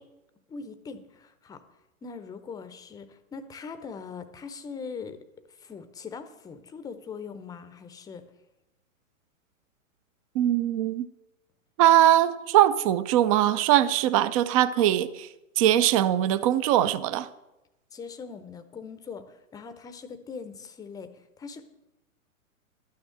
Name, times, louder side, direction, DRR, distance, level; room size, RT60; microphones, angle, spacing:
voice 1, 0.5-1.6 2.0-5.2 5.5-8.2 17.9-21.6, left 5 dB, 10° left, 9 dB, 0.7 m, -41 dB
voice 2, 10.3-11.1 11.8-15.3 15.6-17.3, right 12 dB, 25° right, 15 dB, 0.4 m, -21 dB
12.0 x 6.5 x 7.6 m, 0.96 s
figure-of-eight pair, 115°, 42 cm